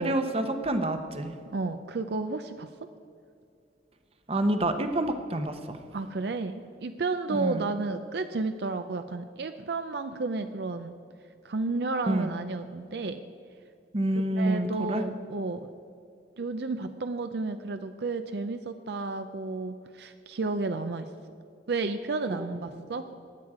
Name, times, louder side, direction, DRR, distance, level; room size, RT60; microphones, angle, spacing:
voice 1, 0.0-1.3 4.3-5.8 7.3-7.6 12.1-12.3 13.9-15.0 22.3-22.8, right 1 dB, 30° right, 7 dB, 0.8 m, -28 dB
voice 2, 1.5-2.7 5.9-11.0 11.4-13.2 14.4-15.7 16.4-21.1 21.7-23.1, right 3 dB, 65° right, 8 dB, 0.5 m, -32 dB
16.0 x 10.5 x 4.8 m, 2.4 s
head